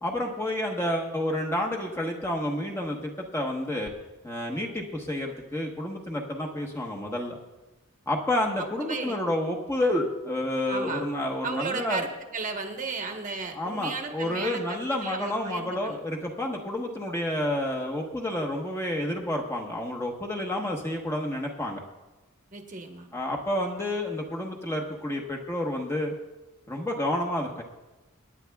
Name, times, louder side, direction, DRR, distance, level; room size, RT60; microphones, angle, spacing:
voice 1, 0.0-3.9 4.2-7.4 8.1-12.0 13.5-21.8 23.1-26.1 26.7-27.6, left 1 dB, 10° left, 0 dB, 1.1 m, -29 dB
voice 2, 8.8-9.2 10.7-11.1 11.4-16.0 22.5-23.1, right 4 dB, 35° right, 3 dB, 1.1 m, -34 dB
26.0 x 9.9 x 2.3 m, 1.1 s
head